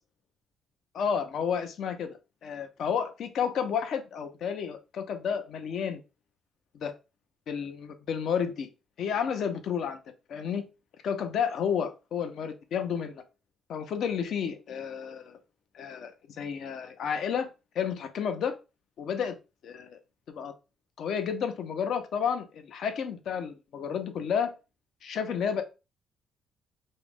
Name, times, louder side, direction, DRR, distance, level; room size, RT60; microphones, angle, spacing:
voice 1, 0.9-6.0 6.7-6.9 7.5-8.7 9.0-10.0 10.3-10.6 11.0-13.2 13.7-15.4 15.7-17.5 17.8-18.6 19.0-19.3 19.6-20.0 20.3-20.5 21.0-24.5 25.0-25.6, left 7 dB, 70° left, 8 dB, 0.5 m, -31 dB
2.3 x 2.0 x 3.3 m, 0.29 s
cardioid pair, 90°, 0 cm